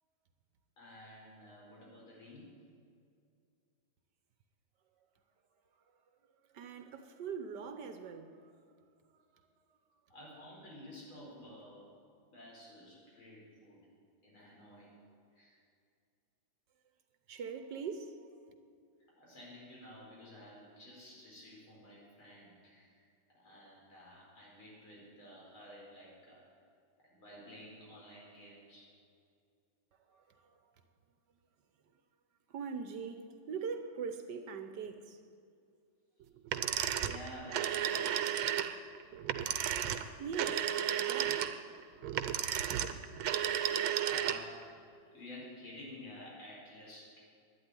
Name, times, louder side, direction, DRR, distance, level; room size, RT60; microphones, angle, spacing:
voice 1, 0.8-2.5 10.1-11.9 12.3-13.8 14.2-14.9 15.3-15.6 19.2-26.4 27.0-28.9 36.9-38.4 43.0-43.1 44.0-44.6 45.1-47.2, left 1 dB, 85° left, 5.5 m, -52 dB
voice 2, 6.5-8.7 9.3-9.4 9.9-10.1 17.3-18.4 29.9-30.8 32.5-35.2 38.8-43.2, right 5 dB, 65° right, 1.3 m, -44 dB
sound 1, 36.5-44.6, right 10 dB, 80° right, 1.5 m, -33 dB
12.0 x 10.0 x 9.7 m
omnidirectional pair, 2.2 m